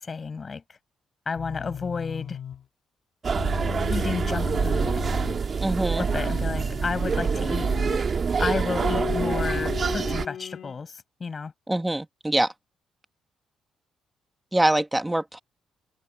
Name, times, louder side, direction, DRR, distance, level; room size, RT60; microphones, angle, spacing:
voice 1, 0.0-0.8 1.3-2.4 3.9-5.0 6.0-7.7 8.4-11.5, left 5 dB, 35° left, 6.4 m, -32 dB
sound 1, 1.4-2.7 3.4-5.4 6.1-8.1 8.8-10.8, left 9 dB, 65° left, 4.2 m, -35 dB
sound 2, 3.2-10.3, right 5 dB, 45° right, 1.9 m, -26 dB
voice 2, 5.6-6.1 11.7-12.5 14.5-15.4, right 1 dB, 10° right, 2.0 m, -24 dB
cardioid pair, 90°, 0 cm